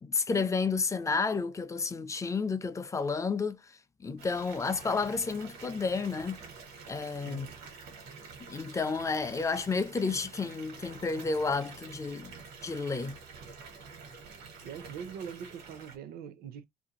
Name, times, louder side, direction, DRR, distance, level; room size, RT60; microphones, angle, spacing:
voice 1, 0.0-3.6 4.0-6.4 6.9-7.5 8.5-12.3 12.6-13.2, left 4 dB, 20° left, 0.4 m, -31 dB
Water tap faucet / Bathtub (filling or washing) / Fill (with liquid), 4.2-16.0, right 5 dB, 90° right, 1.3 m, -48 dB
voice 2, 14.6-16.6, right 7 dB, 65° right, 0.6 m, -43 dB
2.5 x 2.5 x 2.8 m
cardioid pair, 110°, 17 cm